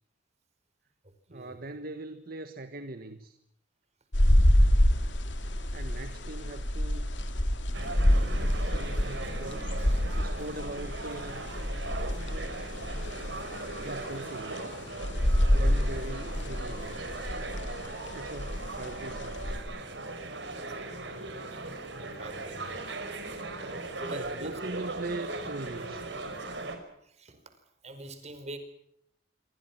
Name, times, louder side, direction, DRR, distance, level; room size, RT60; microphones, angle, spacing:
voice 1, 1.3-3.4 5.7-7.1 7.8-11.5 13.8-14.7 15.5-17.3 18.1-19.5 24.1-26.1, right 2 dB, 55° right, 10 dB, 1.5 m, -41 dB
sound 1, 4.1-19.6, equal, 75° left, 2.9 m, -27 dB
sound 2, 7.7-26.8, right 2 dB, 70° right, 5.6 m, -39 dB
voice 2, 9.8-10.5 16.8-17.1 20.5-20.8 21.6-23.0 23.6-24.9 27.0-27.5 27.8-28.6, right 1 dB, 35° right, 9 dB, 4.9 m, -46 dB
27.5 x 25.0 x 6.1 m, 0.74 s
head